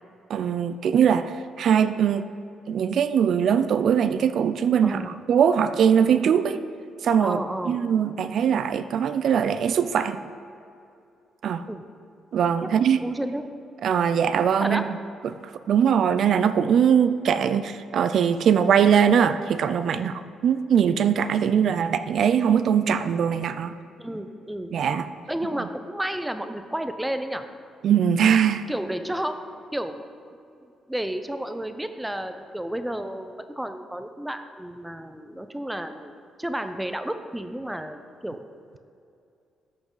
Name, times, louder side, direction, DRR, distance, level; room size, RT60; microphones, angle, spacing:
voice 1, 0.3-2.3 2.7-6.6 7.0-10.2 11.4-11.6 12.3-13.0 13.8-14.9 15.2-15.4 15.7-23.7 24.7-25.1 27.8-28.6, right 8 dB, 65° right, 11 dB, 0.4 m, -21 dB
voice 2, 4.8-5.1 7.2-7.8 11.7-11.8 13.0-13.5 14.6-14.8 19.9-20.1 24.0-24.7 25.3-27.4 28.7-29.4 29.7-30.1 30.9-38.4, right 1 dB, 5° right, 8 dB, 0.6 m, -31 dB
13.5 x 6.0 x 3.9 m, 2.5 s
cardioid pair, 90°, 0 cm